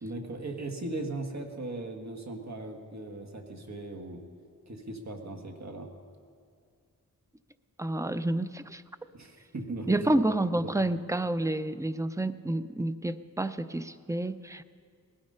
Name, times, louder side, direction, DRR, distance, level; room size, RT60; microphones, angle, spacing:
voice 1, 0.0-4.2 4.7-5.9 9.1-10.0 10.5-10.7, right 2 dB, 55° right, 3 dB, 1.8 m, -38 dB
voice 2, 7.8-8.8 9.9-14.6, right 1 dB, 10° right, 12 dB, 0.5 m, -29 dB
19.0 x 13.0 x 5.6 m, 2.2 s
wide cardioid pair, 75°, 33 cm